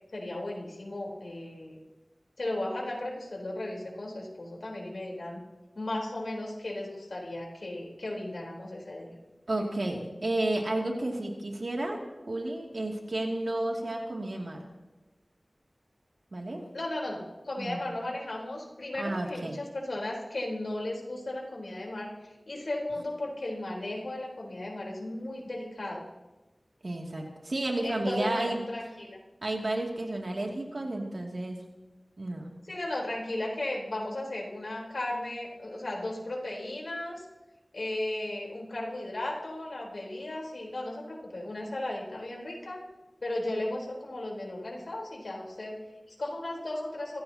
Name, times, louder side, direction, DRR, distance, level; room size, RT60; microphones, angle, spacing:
voice 1, 0.1-1.8 2.4-5.4 5.7-9.1 9.5-9.7 16.7-26.1 27.8-29.2 32.7-37.3 37.7-42.8 43.2-47.2, left 1 dB, 80° left, -2 dB, 4.1 m, -35 dB
voice 2, 9.5-12.0 12.3-14.6 16.3-16.7 17.6-17.8 19.0-19.6 26.8-28.6 29.4-31.6 32.2-32.5, right 1 dB, 65° right, 0 dB, 2.6 m, -32 dB
25.5 x 15.5 x 2.9 m, 1.1 s
wide cardioid pair, 60°, 0 cm